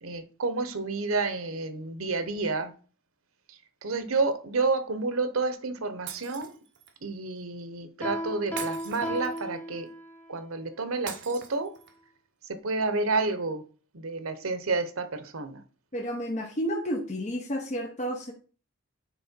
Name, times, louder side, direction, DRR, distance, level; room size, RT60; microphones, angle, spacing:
voice 1, 0.0-2.7 3.5-6.6 7.0-9.9 10.3-11.8 12.5-13.6 13.9-15.6, right 3 dB, 85° right, 1.0 m, -30 dB
Shatter, 6.1-7.0 8.6-9.7 11.1-12.1, right 8 dB, 60° right, 1.2 m, -42 dB
Piano, 8.0-10.3, equal, 10° left, 1.2 m, -35 dB
voice 2, 15.9-18.3, equal, 35° left, 1.0 m, -31 dB
9.6 x 3.6 x 4.5 m
head